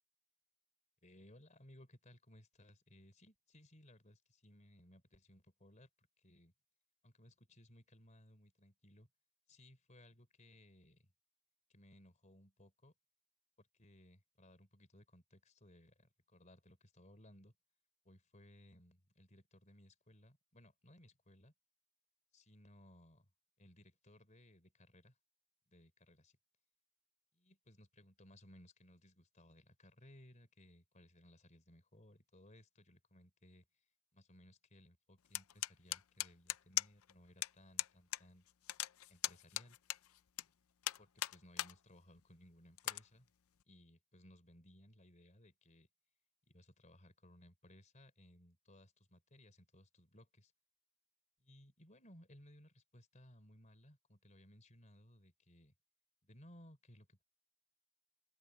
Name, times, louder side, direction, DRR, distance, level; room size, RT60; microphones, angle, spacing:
voice 1, 1.0-6.5 7.0-9.1 9.5-11.1 11.7-12.9 13.6-17.5 18.1-21.5 22.3-23.3 23.6-25.2 25.7-26.4 27.3-33.6 34.1-38.4 39.1-39.8 41.0-43.3 43.7-45.9 46.5-50.5 51.4-55.7 56.2-57.2, left 1 dB, 35° left, 3.5 m, -63 dB
sound 1, 35.3-37.1 37.4-37.5 37.8-38.2 38.5-40.4 40.8-41.7 42.2-42.3 42.8-43.0, left 14 dB, 75° left, 0.6 m, -39 dB
open air
head